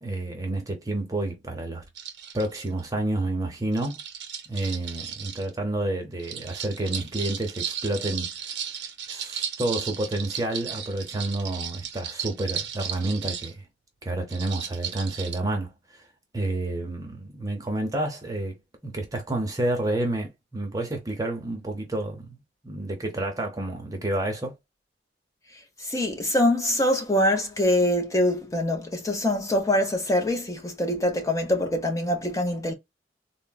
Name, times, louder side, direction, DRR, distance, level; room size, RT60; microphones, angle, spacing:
voice 1, 0.0-1.8 2.3-4.0 4.5-8.3 9.1-13.7 14.0-16.0 16.3-18.6 18.8-24.5, right 2 dB, 20° right, 0.7 m, -29 dB
sound 1, 2.0-2.9 3.7-5.5 6.2-13.5 14.3-15.4, right 8 dB, 80° right, 0.6 m, -35 dB
voice 2, 25.8-32.7, left 1 dB, 20° left, 0.8 m, -24 dB
3.7 x 2.1 x 2.2 m
head